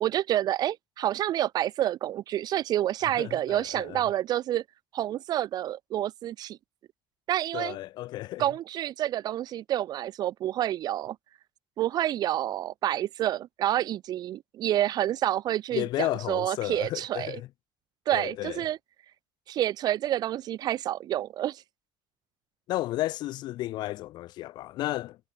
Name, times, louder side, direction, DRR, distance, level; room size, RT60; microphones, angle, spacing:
voice 1, 0.0-4.6 4.9-6.6 7.3-7.8 8.4-11.2 11.8-17.4 18.1-18.8 19.5-21.6, right 12 dB, 70° right, 0.5 m, -28 dB
voice 2, 3.0-4.0 7.5-8.5 15.7-17.5 18.1-18.6 22.7-25.2, left 16 dB, 85° left, 3.7 m, -33 dB
cardioid pair, 80°, 7 cm